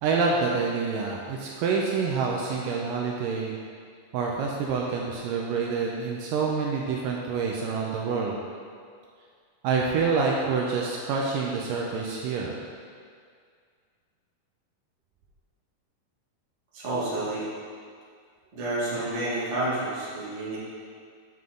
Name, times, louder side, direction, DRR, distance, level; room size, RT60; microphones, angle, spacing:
voice 1, 0.0-3.6 4.1-8.4 9.6-12.6, right 5 dB, 80° right, -2 dB, 2.1 m, -27 dB
voice 2, 16.7-17.5 18.5-20.6, right 2 dB, 30° right, -8 dB, 1.3 m, -29 dB
9.2 x 5.7 x 3.7 m, 2.1 s
omnidirectional pair, 4.2 m